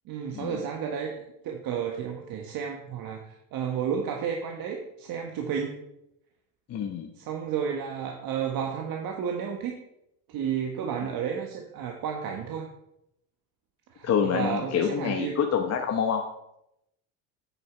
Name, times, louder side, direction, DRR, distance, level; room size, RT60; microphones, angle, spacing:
voice 1, 0.1-1.2 1.4-5.8 7.2-9.8 10.3-12.7 13.9-15.3, right 7 dB, 55° right, 2 dB, 1.3 m, -32 dB
voice 2, 6.7-7.1 14.0-16.2, left 7 dB, 35° left, 4 dB, 1.0 m, -27 dB
9.1 x 6.9 x 4.5 m, 0.83 s
supercardioid pair, 100°, 43 cm